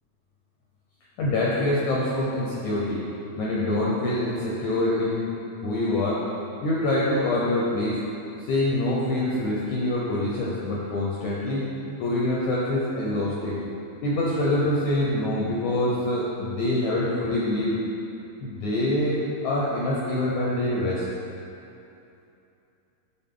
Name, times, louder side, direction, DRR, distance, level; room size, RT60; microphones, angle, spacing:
voice 1, 1.2-3.1 3.4-5.4 5.6-6.2 6.6-8.0 8.4-11.7 12.0-13.6 14.0-17.8 18.4-21.0, left 1 dB, 80° left, -5 dB, 1.7 m, -25 dB
11.5 x 4.2 x 3.7 m, 2.7 s
omnidirectional pair, 4.3 m